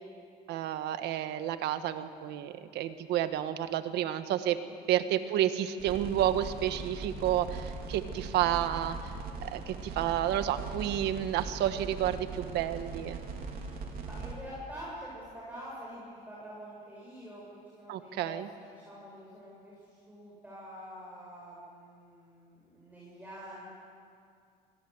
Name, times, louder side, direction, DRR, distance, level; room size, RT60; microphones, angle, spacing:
voice 1, 0.5-4.6 4.9-9.1 9.4-13.2 17.9-18.5, right 11 dB, 80° right, 10 dB, 1.4 m, -30 dB
sound 1, 5.8-14.3, right 4 dB, 60° right, 4.1 m, -40 dB
voice 2, 14.1-23.7, equal, 10° right, -6 dB, 7.7 m, -46 dB
27.0 x 21.0 x 7.9 m, 2.3 s
cardioid pair, 110°, 17 cm